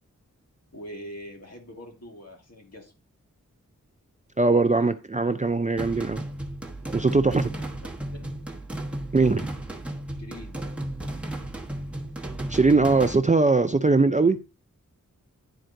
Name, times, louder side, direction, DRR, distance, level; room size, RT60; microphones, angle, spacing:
voice 1, 0.7-2.9 7.1-7.7 8.1-8.4 10.2-10.7, equal, 50° left, 1.9 m, -43 dB
voice 2, 4.4-6.2 6.9-7.5 9.1-9.5 12.5-14.4, right 3 dB, 25° right, 0.4 m, -21 dB
sound 1, 5.8-13.2, right 1 dB, 5° right, 1.2 m, -34 dB
10.5 x 4.3 x 2.6 m
wide cardioid pair, 60°, 32 cm